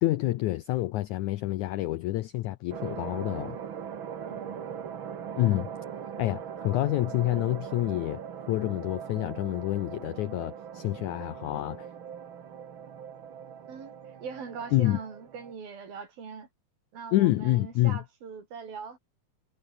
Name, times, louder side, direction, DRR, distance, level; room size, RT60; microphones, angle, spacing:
voice 1, 0.0-3.6 5.4-5.7 6.2-8.2 8.5-11.9 14.7-15.0 17.1-18.0, left 16 dB, 85° left, 1.7 m, -27 dB
sound 1, 2.7-15.5, right 8 dB, 50° right, 1.7 m, -40 dB
voice 2, 4.3-4.7 13.7-13.9 14.2-16.5 16.9-19.0, right 6 dB, 70° right, 6.5 m, -41 dB
omnidirectional pair, 4.4 m